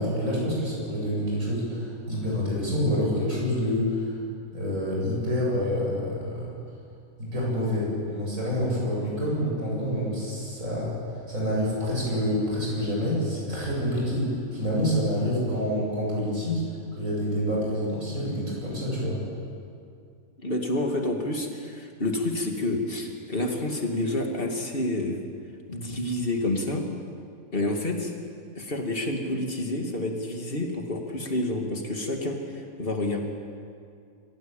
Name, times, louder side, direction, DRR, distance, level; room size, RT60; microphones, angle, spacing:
voice 1, 0.0-4.1 4.5-6.5 7.2-10.9 11.3-16.6 16.9-19.2, equal, 70° right, -4 dB, 8.3 m, -27 dB
voice 2, 20.4-25.2 25.7-26.9 27.5-28.1 28.6-33.2, left 1 dB, 40° left, 2 dB, 2.5 m, -29 dB
24.5 x 16.0 x 8.9 m, 2.3 s
omnidirectional pair, 1.4 m